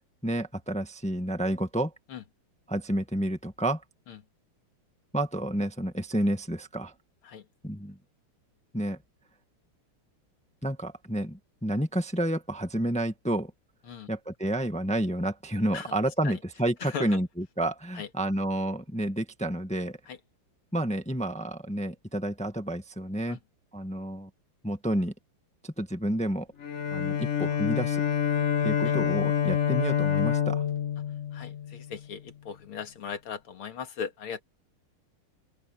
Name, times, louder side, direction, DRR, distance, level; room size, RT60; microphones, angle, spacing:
voice 1, 0.2-1.9 2.7-3.8 5.1-6.9 7.6-8.0 8.7-9.0 10.6-13.5 14.1-20.0 20.7-23.4 23.7-24.3 24.6-25.1 25.6-26.5 26.9-28.0 28.6-30.6, right 1 dB, 5° left, 1.3 m, -30 dB
voice 2, 16.8-17.2 18.0-18.1 20.1-20.2 23.3-23.4 28.8-28.9 31.3-34.4, left 7 dB, 85° left, 2.6 m, -38 dB
Bowed string instrument, 26.6-32.1, left 8 dB, 40° left, 1.2 m, -27 dB
open air
omnidirectional pair, 2.3 m